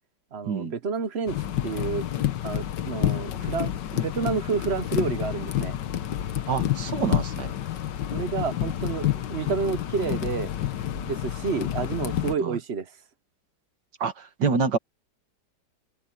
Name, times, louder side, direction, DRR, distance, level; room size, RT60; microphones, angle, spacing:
voice 1, 0.3-1.4 1.6-2.0 2.4-5.8 8.1-10.5 10.9-12.9, right 5 dB, 45° right, 0.9 m, -29 dB
sound 1, 1.3-12.4, left 11 dB, 75° left, 1.6 m, -29 dB
voice 2, 6.5-7.5 12.4-12.6 14.0-14.1 14.4-14.8, right 5 dB, 70° right, 2.4 m, -26 dB
omnidirectional pair, 1.9 m